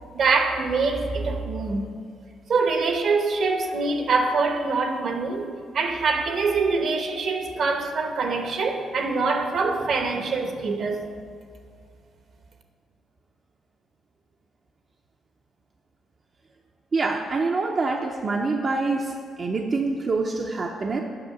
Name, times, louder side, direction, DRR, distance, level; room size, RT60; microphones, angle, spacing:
voice 1, 0.1-1.9 2.5-11.1, right 4 dB, 60° right, 5 dB, 1.0 m, -24 dB
voice 2, 16.9-21.0, right 3 dB, 40° right, 1 dB, 0.6 m, -26 dB
7.8 x 5.5 x 6.7 m, 2.1 s
cardioid pair, 90°, 0 cm